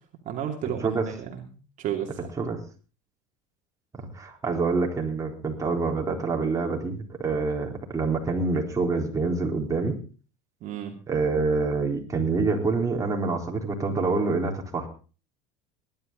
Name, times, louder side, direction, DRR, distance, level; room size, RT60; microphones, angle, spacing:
voice 1, 0.2-1.4 1.8-2.1 10.6-10.9, right 9 dB, 50° right, 2 dB, 2.7 m, -32 dB
voice 2, 0.8-1.1 2.4-2.6 4.0-10.0 11.1-14.9, right 3 dB, 20° right, 0 dB, 3.9 m, -26 dB
19.0 x 11.5 x 4.0 m, 0.37 s
supercardioid pair, 115°, 17 cm